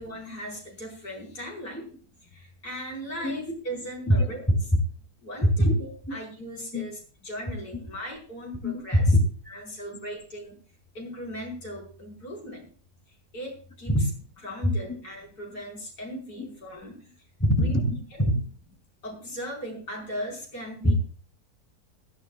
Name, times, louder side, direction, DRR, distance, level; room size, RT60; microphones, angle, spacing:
voice 1, 0.0-1.9 2.3-4.4 5.2-9.1 9.5-10.6 10.9-12.7 13.3-14.0 14.4-17.1 17.6-17.7 18.2-18.3 19.0-20.9, equal, 80° left, -1 dB, 5.3 m, -38 dB
voice 2, 3.2-3.5 4.1-4.5 5.4-5.7 6.1-6.2 6.7-6.8 8.6-9.2 13.9-14.0 14.6-14.7 16.4-16.5 17.4-18.3 20.8-20.9, equal, 10° left, 3 dB, 2.4 m, -23 dB
19.0 x 14.0 x 2.3 m, 0.40 s
omnidirectional pair, 1.7 m